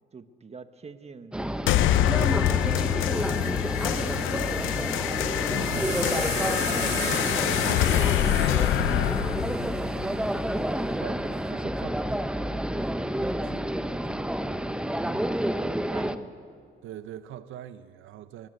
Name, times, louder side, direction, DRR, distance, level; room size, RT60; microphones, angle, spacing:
voice 1, 0.1-3.5 4.0-4.9 15.0-16.4, right 5 dB, 30° right, 1.3 m, -46 dB
sound 1, 1.3-16.2, right 1 dB, 5° right, 0.9 m, -30 dB
sound 2, 1.7-10.7, left 13 dB, 90° left, 0.6 m, -26 dB
sound 3, 2.7-2.8 3.0-10.4 11.3-11.8, right 7 dB, 60° right, 2.5 m, -39 dB
voice 2, 5.3-15.1 15.4-15.7 16.8-18.5, right 11 dB, 80° right, 0.7 m, -44 dB
23.0 x 19.0 x 8.0 m
cardioid pair, 90°, 20 cm